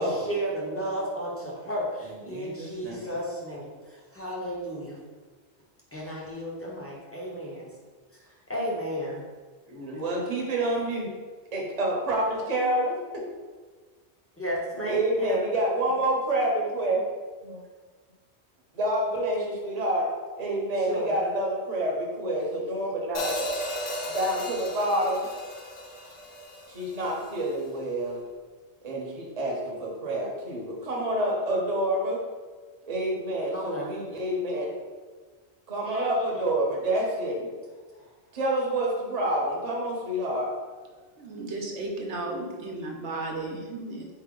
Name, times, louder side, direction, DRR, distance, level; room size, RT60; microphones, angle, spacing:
voice 1, 0.0-5.0 5.9-7.7 8.2-9.2 14.4-15.4 20.9-21.1 33.5-33.9 35.8-36.1, equal, 15° left, -5 dB, 0.8 m, -33 dB
voice 2, 2.3-3.1 9.7-11.1 11.5-13.2 14.9-17.0 17.4-17.6 18.7-20.1 20.4-23.3 24.0-25.3 26.7-28.2 28.8-32.2 32.9-34.7 35.7-37.5 38.3-40.5, right 1 dB, 35° right, -2 dB, 0.9 m, -28 dB
Hi-hat, 23.1-27.3, equal, 50° left, 0.3 m, -35 dB
voice 3, 41.0-44.2, right 2 dB, 80° right, 1 dB, 1.0 m, -35 dB
4.4 x 3.2 x 3.7 m, 1.4 s
omnidirectional pair, 1.2 m